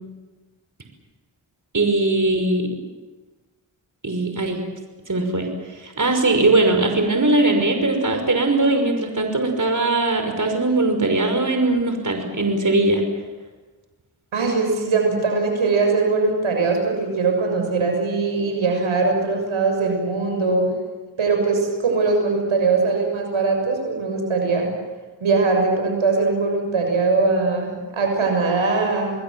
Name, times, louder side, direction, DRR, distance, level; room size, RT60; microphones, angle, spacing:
voice 1, 1.7-2.7 4.0-4.6 5.1-5.5 5.8-13.0, right 2 dB, 40° right, 5 dB, 5.8 m, -20 dB
voice 2, 14.3-20.7 21.2-24.7 25.2-29.2, right 4 dB, 90° right, 3 dB, 6.9 m, -21 dB
29.0 x 20.5 x 7.9 m, 1.3 s
cardioid pair, 50°, 47 cm